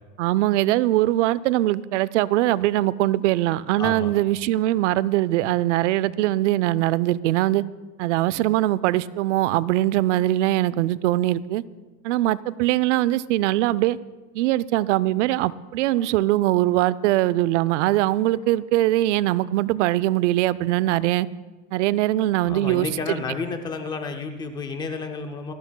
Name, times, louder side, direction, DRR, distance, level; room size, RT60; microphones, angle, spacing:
voice 1, 0.2-7.6 8.0-11.6 12.0-14.0 14.3-21.3 21.7-23.2, right 15 dB, 65° right, 19 dB, 0.5 m, -22 dB
voice 2, 3.8-4.1 16.0-16.1 22.4-25.5, left 4 dB, 10° left, 6 dB, 0.4 m, -31 dB
27.0 x 13.0 x 2.2 m, 1.2 s
supercardioid pair, 160°, 38 cm